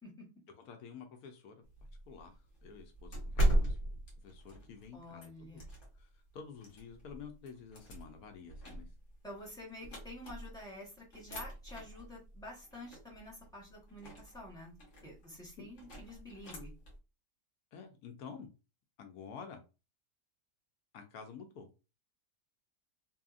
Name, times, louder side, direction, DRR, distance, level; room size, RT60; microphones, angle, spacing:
voice 1, 0.6-1.6 2.1-3.2 3.5-3.8 4.2-5.7 5.9-8.9 15.6-15.7 17.7-18.5 19.0-19.6 20.9-21.7, left 6 dB, 70° left, 1.0 m, -50 dB
sound 1, 1.6-6.1 6.6-10.7 11.1-17.0, right 1 dB, 50° left, 1.3 m, -38 dB
voice 2, 4.9-5.6 9.2-14.7 15.0-16.7, left 1 dB, 5° left, 0.9 m, -49 dB
2.7 x 2.7 x 2.4 m
omnidirectional pair, 1.8 m